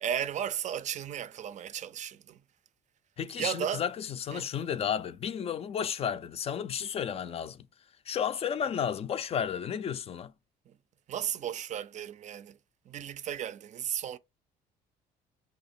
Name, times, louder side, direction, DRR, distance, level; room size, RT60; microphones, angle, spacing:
voice 1, 0.0-2.4 3.4-3.8 4.3-4.5 10.7-10.8 11.1-12.6 12.9-14.2, right 9 dB, 45° right, 0.4 m, -35 dB
voice 2, 3.2-7.6 8.1-10.3, left 8 dB, 35° left, 0.4 m, -32 dB
2.9 x 2.8 x 4.2 m
cardioid pair, 110°, 17 cm